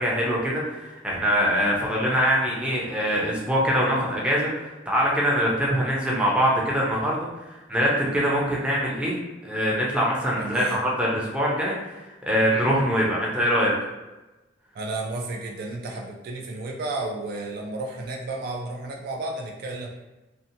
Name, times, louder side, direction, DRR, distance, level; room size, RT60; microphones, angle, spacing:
voice 1, 0.0-9.2 9.4-13.7, equal, 5° right, -4 dB, 0.6 m, -23 dB
voice 2, 10.4-10.8 14.7-19.9, right 2 dB, 60° right, 1 dB, 0.3 m, -32 dB
2.7 x 2.1 x 2.6 m, 1.1 s
head